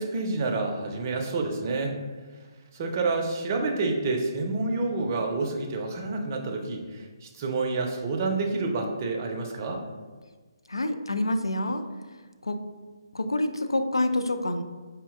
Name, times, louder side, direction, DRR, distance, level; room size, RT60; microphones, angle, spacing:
voice 1, 0.0-2.0 2.7-9.8, right 3 dB, 35° right, 2 dB, 0.5 m, -28 dB
voice 2, 10.7-11.8 12.4-12.6 13.1-14.6, left 1 dB, 80° left, 7 dB, 0.4 m, -27 dB
5.0 x 2.7 x 2.4 m, 1.4 s
figure-of-eight pair, 140°, 2 cm